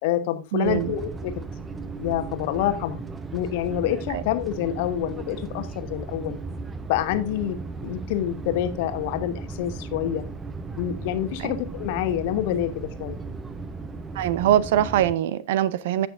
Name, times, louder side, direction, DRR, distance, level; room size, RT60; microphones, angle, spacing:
voice 1, 0.0-1.3 2.0-3.0 3.3-6.4 6.9-10.2 10.8-13.2, left 11 dB, 50° left, 10 dB, 1.1 m, -27 dB
voice 2, 0.5-0.9 4.1-4.2 11.4-11.5 14.1-16.1, right 11 dB, 55° right, 19 dB, 0.6 m, -23 dB
sound 1, 0.6-15.1, right 4 dB, 15° right, 0.7 m, -36 dB
16.0 x 5.9 x 2.6 m, 0.29 s
figure-of-eight pair, 90°, 0 cm